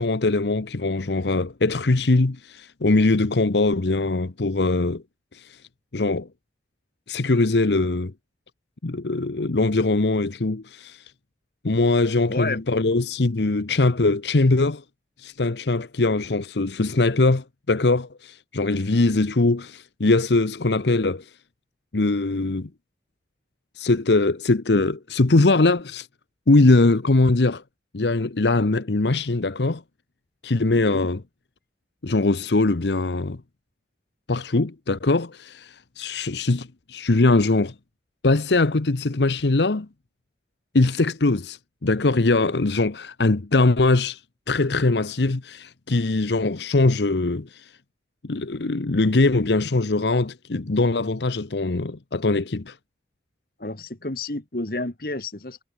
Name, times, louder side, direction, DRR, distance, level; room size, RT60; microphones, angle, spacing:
voice 1, 0.0-5.0 5.3-5.6 5.9-6.3 7.1-8.1 8.8-11.1 11.6-14.8 15.2-21.3 21.9-22.7 23.8-26.1 26.5-27.6 27.9-29.8 30.4-31.2 32.0-33.4 34.3-37.7 38.2-39.9 40.7-44.2 44.5-47.7 48.2-52.8, left 2 dB, 80° left, 0.9 m, -21 dB
voice 2, 12.3-12.6 30.7-31.1 53.6-55.6, left 2 dB, 55° left, 1.7 m, -30 dB
head